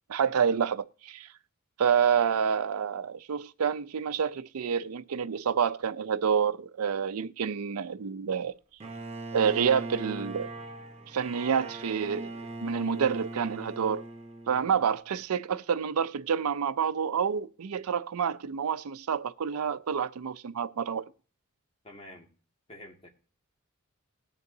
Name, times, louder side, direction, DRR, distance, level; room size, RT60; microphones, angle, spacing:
voice 1, 0.1-1.3 1.8-8.6 9.3-10.5 11.1-12.3 12.6-14.0 14.5-21.0, right 7 dB, 80° right, 0.5 m, -28 dB
Bowed string instrument, 8.8-14.9, right 2 dB, 30° right, 1.0 m, -40 dB
voice 2, 21.8-22.3 22.7-23.1, left 1 dB, 30° left, 2.0 m, -47 dB
19.5 x 6.8 x 2.7 m
head